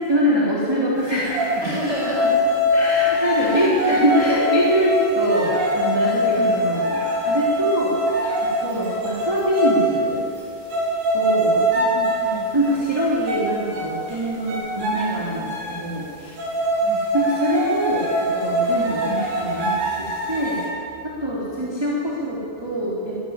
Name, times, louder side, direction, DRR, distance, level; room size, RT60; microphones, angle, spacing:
voice 1, 0.0-1.7 2.7-10.2 11.1-11.5 12.5-16.4 17.1-20.6 21.0-23.2, equal, 5° right, -6 dB, 3.0 m, -24 dB
sound 1, 1.1-1.5 1.9-10.0 10.3-10.4 10.7-12.3 12.6-13.4 13.7-14.2 14.5-15.8 16.4-20.7, equal, 70° right, 8.0 m, -22 dB
voice 2, 1.6-2.4 3.3-4.0 6.3-6.6 8.6-8.8 11.5-12.5 16.8-17.1 21.5-21.6, left 1 dB, 15° left, -4 dB, 6.1 m, -31 dB
23.0 x 14.5 x 9.2 m, 2.5 s
omnidirectional pair, 4.7 m